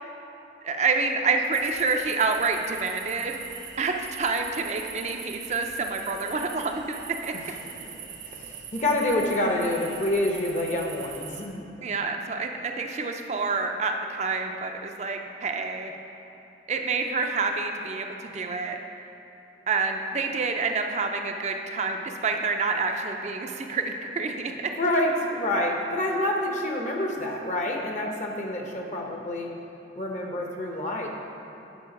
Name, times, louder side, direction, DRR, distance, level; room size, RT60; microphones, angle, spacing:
voice 1, 0.6-3.4 3.8-7.3 11.8-15.9 16.7-18.8 19.7-24.7, right 4 dB, 35° right, 4 dB, 0.5 m, -28 dB
sound 1, 1.5-11.5, right 8 dB, 85° right, 0.7 m, -42 dB
voice 2, 7.3-11.7 24.8-29.5 30.0-31.1, left 1 dB, 40° left, 1 dB, 0.8 m, -28 dB
9.1 x 5.5 x 5.2 m, 2.9 s
head